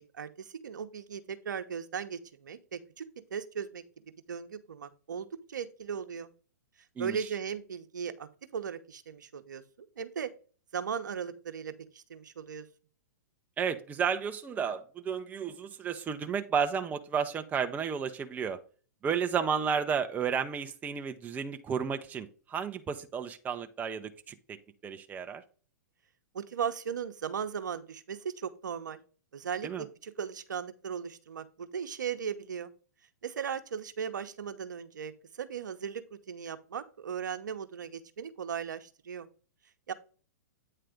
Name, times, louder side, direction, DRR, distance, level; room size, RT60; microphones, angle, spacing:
voice 1, 0.0-3.0 3.3-3.8 4.3-6.3 7.0-10.3 10.7-12.7 26.3-29.0 29.3-32.7 33.2-39.3 39.9-40.0, right 7 dB, 85° right, 9 dB, 0.9 m, -37 dB
voice 2, 7.0-7.3 13.6-18.6 19.0-24.6 24.8-25.4 29.6-29.9, right 6 dB, 15° right, 7 dB, 0.6 m, -32 dB
9.0 x 3.3 x 5.0 m, 0.39 s
hypercardioid pair, 125°, 10 cm